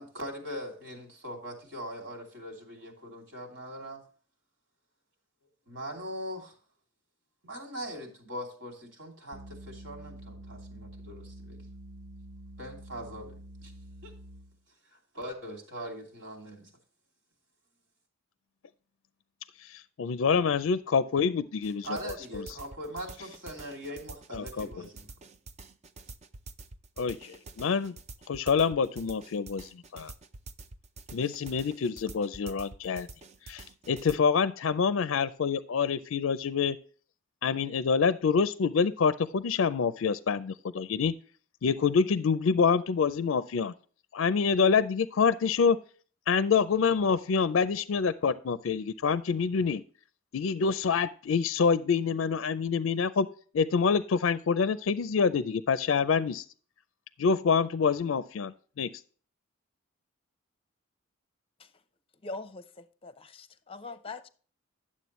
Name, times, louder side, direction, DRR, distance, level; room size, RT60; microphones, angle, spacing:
voice 1, 0.0-4.0 5.7-6.5 7.4-11.6 12.6-13.4 13.6-13.7 14.0-14.1 14.9-16.7 21.8-25.1, equal, 65° right, 2.8 m, -41 dB
sound 1, 9.3-14.6, right 1 dB, 85° right, 0.7 m, -47 dB
voice 2, 19.6-22.5 24.3-24.9 27.0-27.9 28.3-30.1 31.1-33.1 33.5-36.8 37.4-41.1 41.6-43.7 44.1-45.8 46.3-49.8 50.3-53.3 53.5-56.4 57.2-58.9, left 5 dB, 70° left, 0.4 m, -26 dB
sound 2, 21.6-34.2, right 3 dB, 35° right, 0.5 m, -47 dB
voice 3, 62.2-64.3, left 3 dB, 30° left, 0.7 m, -42 dB
11.0 x 7.4 x 3.1 m
head